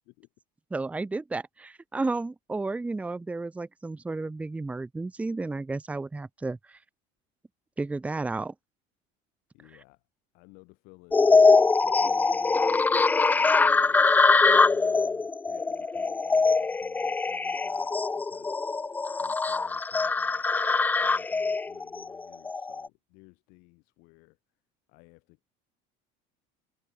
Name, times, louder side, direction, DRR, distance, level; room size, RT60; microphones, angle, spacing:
voice 1, 0.7-6.8 7.8-8.5, right 3 dB, 10° right, 1.1 m, -32 dB
voice 2, 9.5-10.0 10.3-20.5 21.0-24.4 24.9-25.4, left 28 dB, 65° left, 7.7 m, -56 dB
sound 1, 11.1-22.9, left 4 dB, 10° left, 0.6 m, -23 dB
cardioid pair, 160°, 17 cm